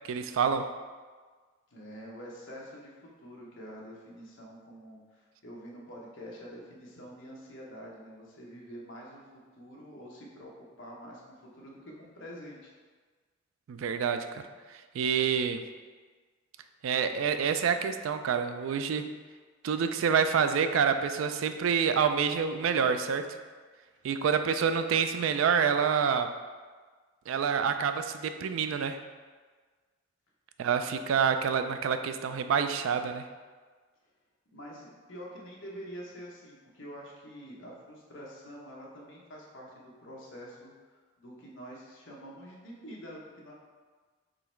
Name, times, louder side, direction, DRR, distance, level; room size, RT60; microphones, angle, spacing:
voice 1, 0.1-0.7 13.7-14.4 14.9-15.6 16.8-19.0 19.6-23.3 24.0-26.3 27.3-29.0 30.6-33.2, right 6 dB, 80° right, 9 dB, 0.3 m, -27 dB
voice 2, 1.7-2.9 3.2-9.2 9.6-12.7 34.5-40.7 41.2-43.5, equal, 65° left, -3 dB, 1.0 m, -46 dB
3.8 x 3.0 x 4.4 m, 1.4 s
head